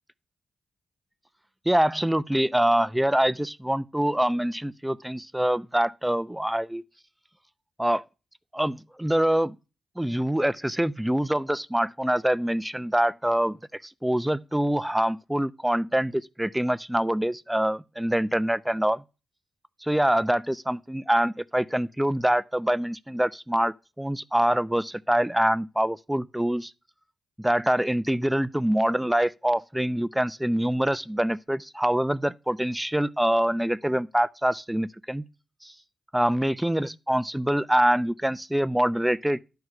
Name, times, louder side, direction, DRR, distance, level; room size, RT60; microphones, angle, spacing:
voice 1, 1.7-6.8 7.8-8.0 8.5-9.6 10.0-19.0 19.8-26.7 27.4-35.2 35.6-35.7 36.1-39.4, right 1 dB, 10° right, 0.6 m, -25 dB
11.0 x 4.7 x 6.5 m
supercardioid pair, 40°, 0 cm